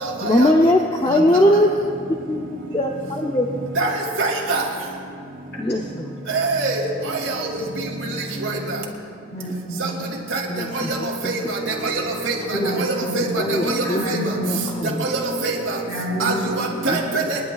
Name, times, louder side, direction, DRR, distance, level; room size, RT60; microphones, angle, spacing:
voice 1, 0.2-1.7 2.3-2.4 2.7-3.5 5.6-6.1 10.5-11.3 13.4-15.0 16.9-17.0, left 1 dB, 20° left, 1 dB, 0.5 m, -20 dB
voice 2, 3.8-4.6 6.3-6.8 7.3-7.6 8.4-8.5 10.3-10.4 10.7-11.0 11.2-11.4 11.8-12.4 12.8-13.4 13.7-14.2 15.0-15.8 16.2-17.4, right 3 dB, 80° right, -1 dB, 2.4 m, -24 dB
voice 3, 9.3-10.1 12.6-12.8 13.1-13.3 13.8-14.5 14.7-14.8 15.9-16.5, equal, 55° left, -4 dB, 3.2 m, -28 dB
28.5 x 11.0 x 2.3 m, 2.4 s
head